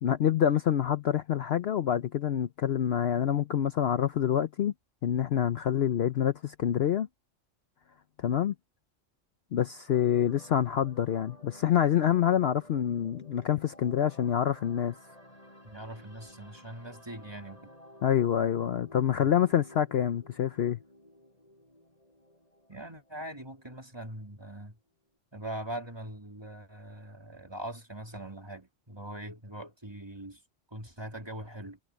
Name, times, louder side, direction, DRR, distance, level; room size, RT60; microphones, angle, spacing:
voice 1, 0.0-4.7 5.0-7.1 8.2-8.5 9.5-15.0 18.0-20.8, left 10 dB, 60° left, 0.8 m, -26 dB
sound 1, 9.9-24.0 24.3-24.6, left 1 dB, 30° left, 7.8 m, -54 dB
voice 2, 15.6-17.7 19.2-19.3 22.7-24.8 25.3-30.4 30.7-31.8, right 1 dB, 20° right, 3.4 m, -42 dB
omnidirectional pair, 1.3 m